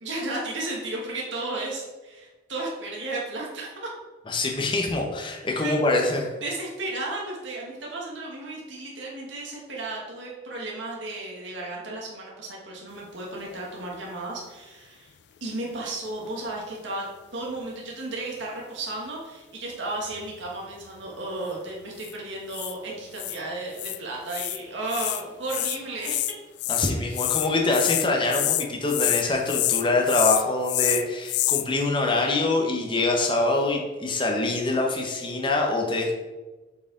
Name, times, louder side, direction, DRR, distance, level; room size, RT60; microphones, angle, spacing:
voice 1, 0.0-3.9 5.6-5.8 6.4-15.1 15.4-17.1 17.3-26.2 27.0-27.2, right 2 dB, 75° right, -3 dB, 1.4 m, -34 dB
voice 2, 4.3-6.3 26.7-36.1, left 2 dB, 25° left, 1 dB, 0.9 m, -24 dB
sound 1, 13.3-14.0 20.1-20.5 22.0-22.1 22.5-22.7 23.2-23.4 23.8-24.0 24.3-24.6 24.9-25.2 25.5-31.7, left 15 dB, 60° left, 0.3 m, -27 dB
7.3 x 4.7 x 3.8 m, 1.2 s
head